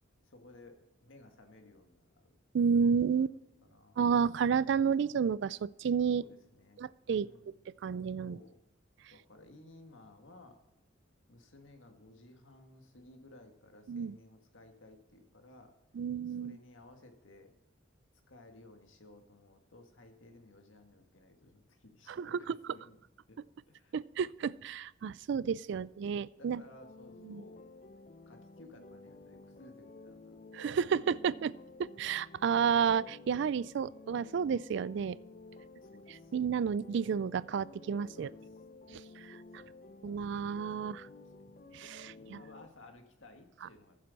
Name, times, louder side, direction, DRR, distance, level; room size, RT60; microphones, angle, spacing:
voice 1, 0.2-2.4 3.2-4.0 6.1-7.5 8.2-8.6 9.1-10.6 11.3-15.7 16.3-17.5 18.3-23.0 23.3-23.4 23.7-24.0 24.4-24.7 25.7-27.6 28.2-30.4 31.1-31.3 35.8-36.3 38.1-38.5 39.6-39.8 40.8-41.1 41.4-41.6 42.1-44.0, left 2 dB, 80° left, 5 dB, 1.7 m, -57 dB
voice 2, 2.5-3.3 4.0-6.2 6.8-7.3 7.8-8.4 13.9-14.1 15.9-16.6 22.1-22.6 23.9-26.6 27.2-27.4 30.5-31.5 31.8-35.2 36.3-38.3 38.9-39.0 39.3-39.4 40.0-41.1 41.7-42.4, right 6 dB, 60° right, 20 dB, 0.3 m, -31 dB
sound 1, 26.6-42.7, left 3 dB, 40° left, 0.6 m, -53 dB
14.5 x 7.5 x 4.1 m, 0.93 s
head